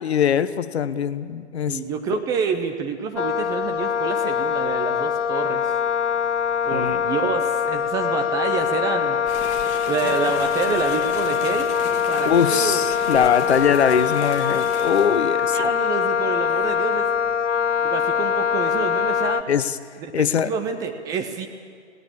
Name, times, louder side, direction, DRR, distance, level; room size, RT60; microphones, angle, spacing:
voice 1, 0.0-1.8 2.1-2.2 6.7-7.0 12.2-15.7 19.5-19.8 20.1-20.5, left 8 dB, 65° left, 14 dB, 1.1 m, -22 dB
voice 2, 1.7-5.7 6.6-9.2 9.9-11.7 12.1-12.8 15.5-17.1 17.8-19.4 20.0-21.5, right 6 dB, 10° right, 5 dB, 0.5 m, -28 dB
Wind instrument woodwind instrument, 3.2-19.4, left 7 dB, 85° left, 0.8 m, -23 dB
sound 1, 9.3-15.3, left 8 dB, 20° left, 1.2 m, -36 dB
21.0 x 17.0 x 8.7 m, 2.2 s
hypercardioid pair, 135°, 35 cm